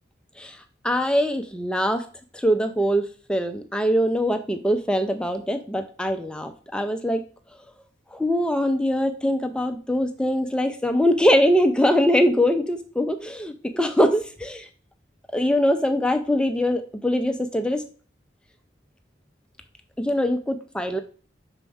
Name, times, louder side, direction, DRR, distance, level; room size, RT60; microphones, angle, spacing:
voice 1, 0.8-2.0 2.3-7.2 8.1-14.7 15.3-17.8 20.0-21.0, equal, 5° left, 6 dB, 0.4 m, -22 dB
6.1 x 4.4 x 3.5 m, 0.40 s
head